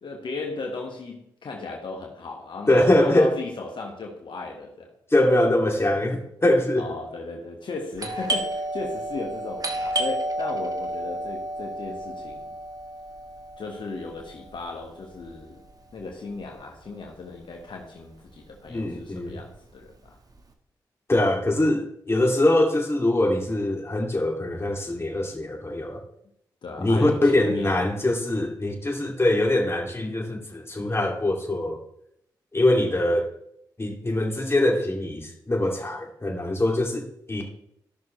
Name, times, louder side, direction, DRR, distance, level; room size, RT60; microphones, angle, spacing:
voice 1, 0.0-4.9 6.8-12.5 13.6-15.6 15.9-20.1 26.6-27.7, left 3 dB, 65° left, 1 dB, 1.5 m, -36 dB
voice 2, 2.7-3.3 5.1-6.9 18.7-19.4 21.1-26.0 26.8-31.8 32.5-33.3 33.8-37.5, left 1 dB, 30° left, 1 dB, 2.5 m, -23 dB
Doorbell, 8.0-17.4 17.6-17.7 18.3-18.7 19.0-20.4, right 1 dB, 45° right, 1.5 m, -32 dB
14.0 x 6.1 x 3.2 m, 0.75 s
supercardioid pair, 40°, 9 cm